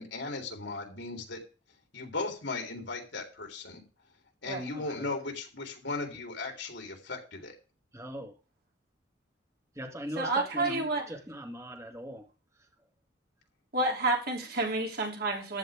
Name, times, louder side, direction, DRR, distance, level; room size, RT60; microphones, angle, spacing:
voice 1, 0.0-1.4 1.9-3.8 4.4-7.5, left 3 dB, 80° left, 2 dB, 3.7 m, -37 dB
voice 2, 4.8-5.1 7.9-8.3 9.8-12.3, equal, 15° right, 4 dB, 1.9 m, -40 dB
voice 3, 10.2-11.1 13.7-15.6, right 2 dB, 55° right, 0 dB, 3.2 m, -29 dB
14.5 x 10.0 x 3.6 m, 0.35 s
head